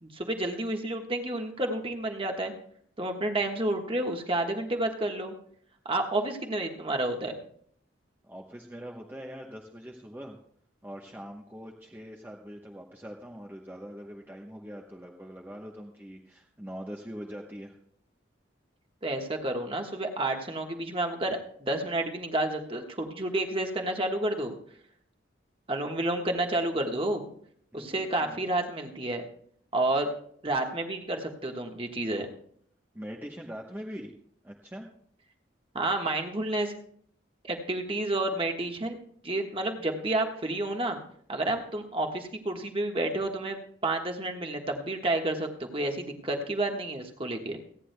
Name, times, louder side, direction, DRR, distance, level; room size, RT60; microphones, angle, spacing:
voice 1, 0.0-2.5 3.0-5.3 5.8-7.4 19.0-24.5 25.7-27.2 27.7-29.2 29.7-30.1 30.4-32.3 35.7-36.7 37.4-39.0 39.2-41.0 41.3-47.6, right 2 dB, 25° right, 3 dB, 1.4 m, -30 dB
voice 2, 8.2-10.4 10.8-17.7 27.7-28.4 29.9-30.0 32.9-34.1 34.4-34.9, equal, 10° right, 0 dB, 0.9 m, -43 dB
29.5 x 9.9 x 2.2 m, 0.63 s
head